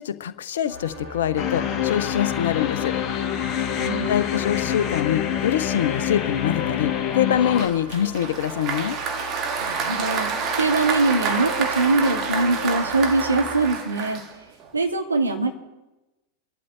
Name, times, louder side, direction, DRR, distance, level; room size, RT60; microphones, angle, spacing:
voice 1, 0.0-3.0 4.1-9.0, left 10 dB, 60° left, 13 dB, 0.8 m, -24 dB
sound 1, 0.7-13.7, right 1 dB, 55° right, 7.7 m, -38 dB
sound 2, 1.4-7.7, left 10 dB, 30° left, 1.8 m, -26 dB
voice 2, 3.7-4.1 9.6-10.3 10.6-14.2 14.7-15.5, right 3 dB, 80° right, 3 dB, 2.1 m, -22 dB
Applause, 7.6-14.7, right 5 dB, 35° right, 1.9 m, -28 dB
25.0 x 12.0 x 4.1 m, 1.0 s
figure-of-eight pair, 90°, 0 cm